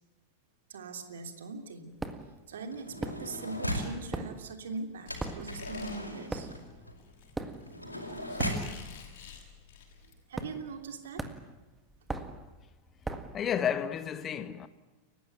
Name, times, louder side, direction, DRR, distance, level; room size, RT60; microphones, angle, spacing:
voice 1, 0.7-2.0 2.5-6.5 10.3-11.2, right 3 dB, 60° right, 3.1 m, -41 dB
sound 1, 2.0-2.4 3.0-3.6 3.9-9.0 9.3-9.6 10.3-10.9 11.2-13.4, right 2 dB, 10° right, 1.8 m, -39 dB
sound 2, 2.7-4.0 5.1-8.7 9.6-9.7 9.9-10.2, equal, 85° left, 5.2 m, -37 dB
Squeak, 5.0-10.1, left 8 dB, 50° left, 6.5 m, -50 dB
voice 2, 13.3-14.7, left 8 dB, 25° left, 1.6 m, -31 dB
29.5 x 15.5 x 9.7 m
figure-of-eight pair, 90°, 0 cm